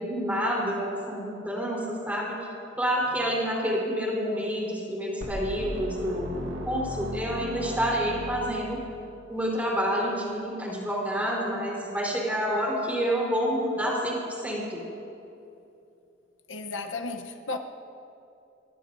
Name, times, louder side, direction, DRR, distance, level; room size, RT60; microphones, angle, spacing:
voice 1, 0.0-2.4 2.8-6.4 6.7-8.8 9.3-14.8, equal, 10° right, 4.1 m, -28 dB
sound 1, 5.2-9.2, equal, 65° right, 1.7 m, -36 dB
voice 2, 16.5-17.6, left 3 dB, 75° left, 0.9 m, -34 dB
24.5 x 20.5 x 2.7 m
head